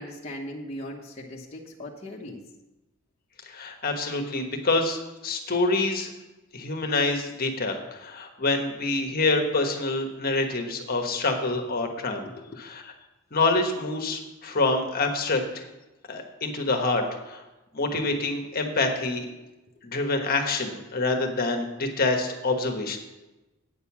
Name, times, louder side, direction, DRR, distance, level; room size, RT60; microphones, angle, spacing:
voice 1, 0.0-2.4 12.3-12.6, left 1 dB, 30° left, -3 dB, 1.1 m, -39 dB
voice 2, 3.4-6.1 6.5-12.3 12.6-12.8 13.3-15.7 16.1-17.4 17.7-19.2 19.8-23.0, left 3 dB, 45° left, 4 dB, 1.2 m, -26 dB
9.0 x 6.7 x 7.2 m, 1.0 s
head